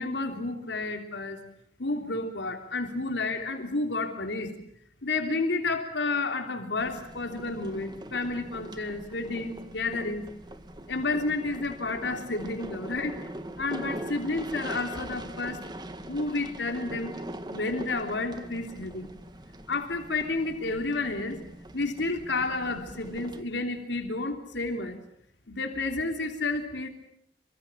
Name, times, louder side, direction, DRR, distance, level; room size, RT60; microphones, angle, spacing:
voice 1, 0.0-1.4 1.8-4.5 5.0-10.2 10.9-13.2 13.6-15.7 16.1-17.1 17.5-19.1 19.7-21.4 21.7-25.0 25.5-26.9, left 3 dB, 85° left, 5 dB, 3.3 m, -31 dB
sound 1, 6.8-23.4, right 1 dB, 25° right, 1.9 m, -42 dB
28.0 x 25.0 x 7.4 m, 0.71 s
head